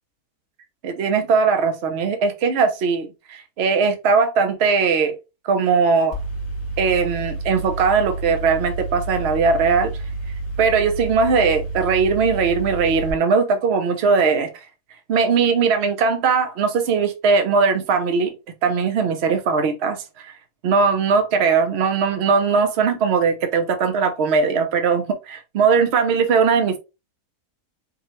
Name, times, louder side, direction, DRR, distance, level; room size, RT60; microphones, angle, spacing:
voice 1, 0.8-5.2 5.4-6.1 6.8-9.9 10.6-14.5 15.1-18.3 18.6-20.3 20.6-26.8, right 5 dB, 55° right, 0.9 m, -19 dB
Mechanical fan, 6.1-13.1, right 2 dB, 50° left, 1.5 m, -29 dB
4.9 x 2.4 x 3.0 m
omnidirectional pair, 1.6 m